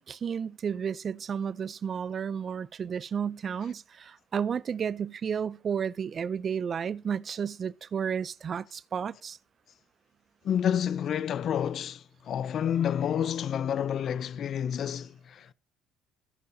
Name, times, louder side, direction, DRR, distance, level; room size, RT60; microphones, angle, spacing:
voice 1, 0.0-9.4, right 7 dB, 45° right, 0.4 m, -32 dB
voice 2, 10.4-15.5, left 9 dB, 55° left, 0.4 m, -29 dB
19.5 x 6.8 x 2.7 m
supercardioid pair, 80°, 0 cm